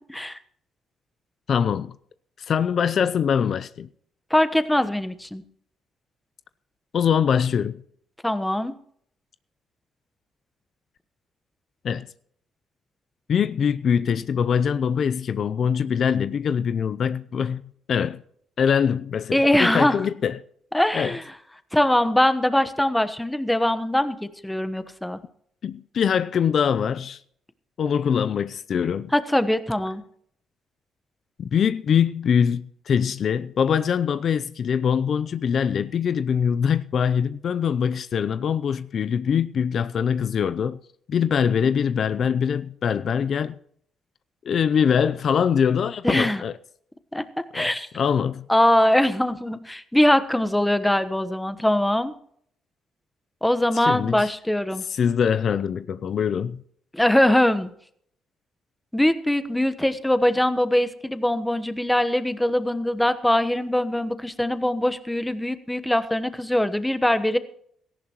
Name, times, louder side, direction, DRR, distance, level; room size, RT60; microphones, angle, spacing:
voice 1, 1.5-1.9 2.4-3.9 6.9-7.8 11.8-12.1 13.3-17.6 17.9-18.2 18.6-20.4 20.9-21.1 25.6-27.2 27.8-29.1 31.4-40.8 41.1-43.5 44.4-46.5 47.5-47.7 47.9-48.5 53.7-54.3 54.9-56.6, left 7 dB, 55° left, 0.5 m, -23 dB
voice 2, 4.3-5.4 8.2-8.7 19.3-20.0 20.7-21.2 21.7-25.2 29.1-30.0 46.0-46.4 47.1-47.2 47.5-47.9 48.5-52.1 53.4-54.8 56.9-57.7 58.9-67.4, left 1 dB, 5° left, 1.1 m, -22 dB
17.5 x 14.5 x 3.0 m
cardioid pair, 90°, 0 cm